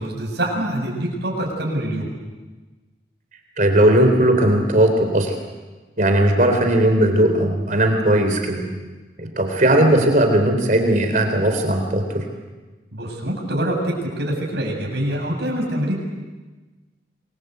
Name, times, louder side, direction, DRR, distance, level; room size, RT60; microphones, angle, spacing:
voice 1, 0.0-2.1 12.9-16.0, right 1 dB, 65° right, 0 dB, 7.7 m, -25 dB
voice 2, 3.6-5.3 6.0-8.7 9.2-12.3, right 1 dB, 45° right, 4 dB, 3.7 m, -17 dB
27.5 x 22.0 x 8.1 m, 1.2 s
head